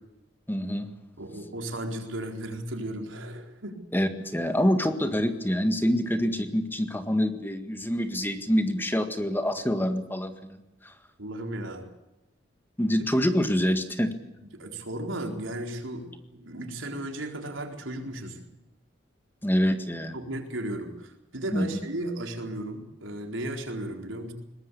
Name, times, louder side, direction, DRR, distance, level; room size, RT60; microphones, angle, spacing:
voice 1, 0.5-0.9 3.9-10.6 10.8-10.9 12.8-14.1 19.4-20.2 21.5-21.8, equal, 10° left, 8 dB, 1.8 m, -26 dB
voice 2, 1.2-3.8 11.2-11.9 14.5-18.4 20.1-24.3, right 1 dB, 85° right, 3 dB, 4.3 m, -35 dB
22.0 x 20.0 x 8.5 m, 0.94 s
head